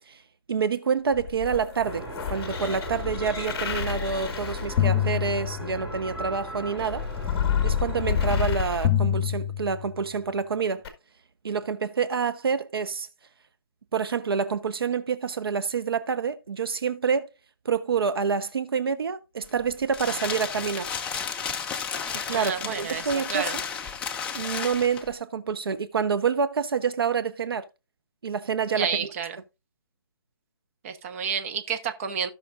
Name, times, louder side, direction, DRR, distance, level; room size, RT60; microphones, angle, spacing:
voice 1, 0.5-2.0 2.3-7.1 7.6-10.8 11.4-13.1 13.9-17.3 17.6-20.9 22.1-23.6 24.3-27.7 28.2-29.1, right 6 dB, 70° right, 0.9 m, -27 dB
sound 1, 1.1-6.0 6.8-10.1 10.8-10.9, left 9 dB, 25° left, 1.9 m, -28 dB
sound 2, 1.8-8.4, right 1 dB, 10° right, 2.6 m, -38 dB
sound 3, 19.4-25.1, left 6 dB, 10° left, 0.5 m, -33 dB
voice 2, 22.3-23.5 28.7-29.4 30.8-32.3, right 7 dB, 35° right, 1.1 m, -30 dB
16.5 x 6.0 x 2.5 m
hypercardioid pair, 155°, 13 cm